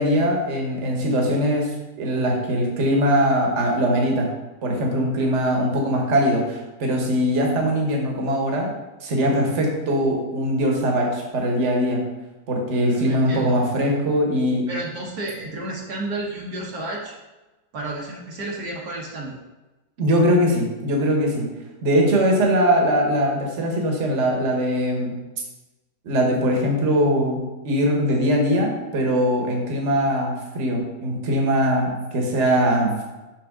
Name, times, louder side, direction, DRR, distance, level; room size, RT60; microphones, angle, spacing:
voice 1, 0.0-4.3 4.6-8.7 9.0-12.0 12.5-14.7 20.0-21.4 21.8-25.1 26.0-33.0, equal, 45° right, 0 dB, 1.4 m, -21 dB
voice 2, 13.1-13.6 14.7-17.1 17.7-19.4, right 2 dB, 65° right, -3 dB, 1.4 m, -31 dB
6.1 x 6.0 x 3.6 m, 1.1 s
omnidirectional pair, 1.8 m